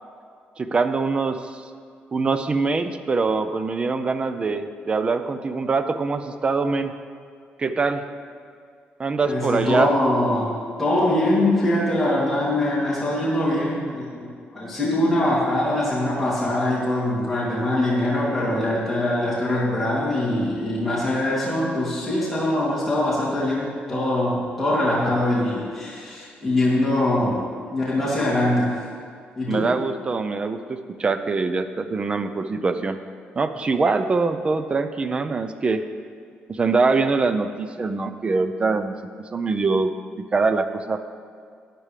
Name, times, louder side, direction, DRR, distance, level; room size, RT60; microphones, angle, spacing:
voice 1, 0.6-1.4 2.1-6.9 7.6-8.0 9.0-9.9 29.5-33.0 33.4-35.8 36.5-39.9 40.2-41.0, right 4 dB, 30° right, 10 dB, 0.6 m, -23 dB
voice 2, 9.2-10.5 10.8-14.3 14.5-27.4 27.7-28.8 29.4-29.7, left 1 dB, 5° left, -10 dB, 2.8 m, -23 dB
12.0 x 10.5 x 3.4 m, 2.2 s
cardioid pair, 125°, 4 cm